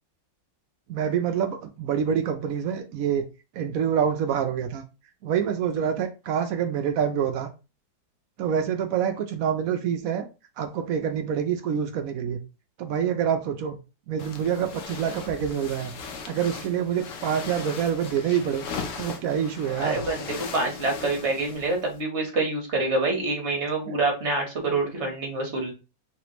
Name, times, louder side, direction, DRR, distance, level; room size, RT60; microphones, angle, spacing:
voice 1, 0.9-3.2 3.5-4.8 5.2-7.5 8.4-10.3 10.6-12.4 12.8-13.8 14.1-15.9 16.2-18.6 19.0-20.0 23.9-24.0 24.8-24.9, right 8 dB, 80° right, 6 dB, 0.7 m, -26 dB
sound 1, 14.2-22.0, left 5 dB, 60° left, 0.9 m, -38 dB
voice 2, 19.8-25.7, right 3 dB, 40° right, 1 dB, 1.4 m, -26 dB
4.9 x 3.3 x 3.0 m, 0.30 s
omnidirectional pair, 2.1 m